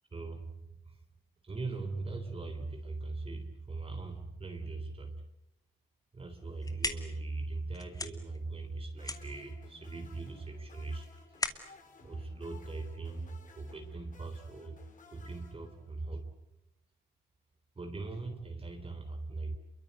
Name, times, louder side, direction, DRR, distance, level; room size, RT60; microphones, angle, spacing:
voice 1, 0.1-1.0 1.4-5.2 6.1-11.1 12.0-14.8 15.1-16.3 17.8-19.6, right 3 dB, 30° right, 5 dB, 3.7 m, -40 dB
sound 1, 6.4-13.2, left 2 dB, 20° left, 2.4 m, -41 dB
sound 2, 8.9-16.2, left 4 dB, 40° left, 5.7 m, -58 dB
28.0 x 23.0 x 8.2 m, 0.91 s
cardioid pair, 90°, 20 cm